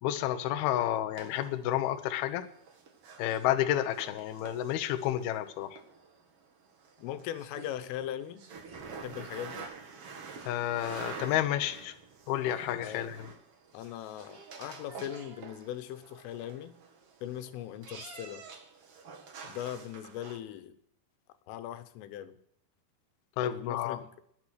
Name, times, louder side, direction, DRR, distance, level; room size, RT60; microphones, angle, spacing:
voice 1, 0.0-2.4 3.2-5.8 10.5-11.9 12.3-13.2 23.4-24.0, left 12 dB, 75° left, 8 dB, 2.4 m, -30 dB
sound 1, 1.1-20.4, right 5 dB, 75° right, 1.3 m, -48 dB
voice 2, 7.0-8.5 9.0-9.7 12.8-13.1 13.7-16.8 17.2-18.4 19.4-20.8 21.5-22.4 23.4-24.1, left 11 dB, 90° left, 11 dB, 3.6 m, -40 dB
20.5 x 9.3 x 6.4 m, 0.69 s
omnidirectional pair, 5.6 m